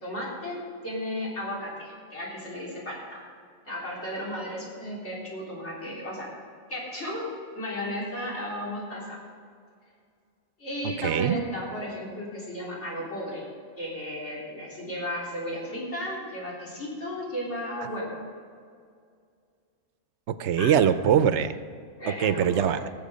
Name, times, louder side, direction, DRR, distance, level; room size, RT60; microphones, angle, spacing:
voice 1, 0.0-3.2 3.7-6.3 6.7-7.2 7.5-9.2 10.6-13.4 13.8-18.1 20.6-20.7 22.0-22.7, equal, 85° left, -6 dB, 4.1 m, -34 dB
voice 2, 11.0-11.4 20.3-21.5 22.2-22.8, right 8 dB, 80° right, 12 dB, 1.0 m, -22 dB
19.5 x 7.3 x 5.2 m, 2.2 s
omnidirectional pair, 1.1 m